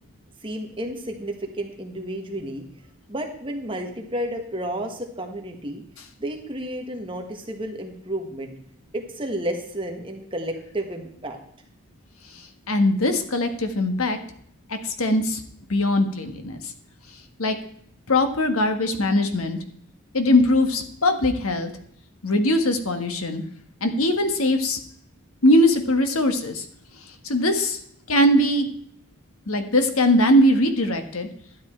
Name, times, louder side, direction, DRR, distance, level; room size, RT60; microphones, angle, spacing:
voice 1, 0.4-2.6 3.1-5.8 6.2-8.5 8.9-11.4, right 1 dB, 25° right, 3 dB, 1.5 m, -31 dB
voice 2, 12.7-14.2 14.7-15.4 15.7-16.6 17.4-17.6 18.1-19.6 20.1-21.7 22.2-23.4 23.8-24.8 25.4-26.6 27.2-27.8 28.1-28.7 29.5-31.3, left 1 dB, 75° left, 7 dB, 1.4 m, -21 dB
12.5 x 9.6 x 4.4 m, 0.66 s
head